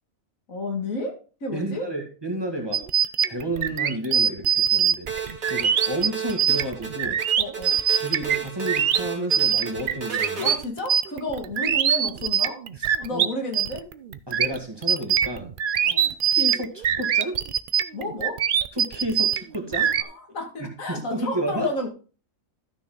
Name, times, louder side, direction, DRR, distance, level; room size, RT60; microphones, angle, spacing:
voice 1, 0.5-1.1 1.4-1.9 7.4-7.8 10.4-12.6 13.0-13.8 15.8-16.1 17.9-18.4 19.7-21.9, left 2 dB, 80° left, 2 dB, 2.4 m, -31 dB
voice 2, 1.5-2.8 3.3-5.1 5.5-7.2 8.0-10.5 12.8-13.3 14.3-15.5 16.3-17.4 18.7-19.9 20.9-21.7, right 1 dB, 20° right, 2 dB, 1.9 m, -31 dB
sound 1, 2.7-13.3 13.5-20.0, right 9 dB, 55° right, 0.6 m, -23 dB
sound 2, 5.1-10.5, right 5 dB, 90° right, 2.4 m, -33 dB
13.0 x 6.2 x 3.8 m, 0.37 s
omnidirectional pair, 1.4 m